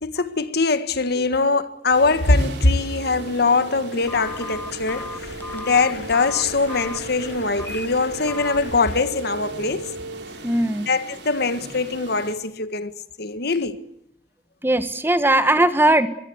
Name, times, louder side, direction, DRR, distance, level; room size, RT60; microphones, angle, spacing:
voice 1, 0.0-5.1 5.5-9.9 10.9-12.9 13.2-13.8, left 3 dB, 60° left, 1.7 m, -22 dB
sound 1, 1.9-12.3, right 2 dB, 70° right, 3.8 m, -36 dB
Stream, 4.0-9.0, left 3 dB, 80° left, 2.5 m, -40 dB
Telephone, 4.1-7.0 7.5-7.9 8.3-8.6, left 3 dB, 10° left, 0.9 m, -35 dB
voice 2, 10.4-10.9 14.6-16.1, right 1 dB, 15° right, 1.5 m, -19 dB
23.5 x 23.0 x 8.1 m
head